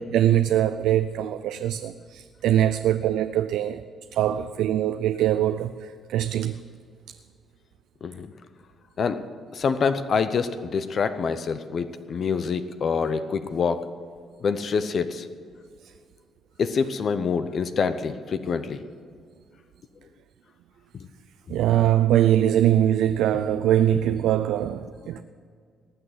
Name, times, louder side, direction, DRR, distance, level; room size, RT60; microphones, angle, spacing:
voice 1, 0.1-3.8 4.1-6.5 21.5-25.2, right 11 dB, 85° right, 0.4 m, -22 dB
voice 2, 9.5-13.8 14.4-15.3 16.6-18.8, left 5 dB, 55° left, 0.8 m, -26 dB
19.0 x 6.3 x 9.5 m
cardioid pair, 90°, 0 cm